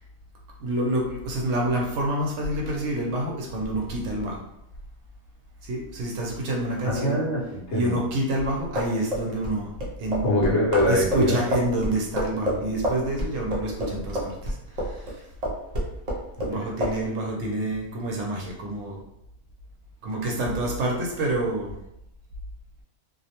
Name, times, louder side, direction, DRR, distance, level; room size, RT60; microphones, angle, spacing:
voice 1, 0.6-4.4 5.6-7.2 7.7-9.7 10.0-10.3 10.8-15.3 16.4-19.0 20.0-21.8, right 1 dB, 70° right, -2 dB, 0.8 m, -28 dB
voice 2, 6.8-8.0 10.2-11.4 16.5-16.7, left 1 dB, 65° left, -4 dB, 0.9 m, -23 dB
sound 1, 8.7-15.1 15.4-16.5 16.8-17.0, equal, 50° right, 0.4 m, -28 dB
2.4 x 2.0 x 2.8 m, 0.81 s
omnidirectional pair, 1.3 m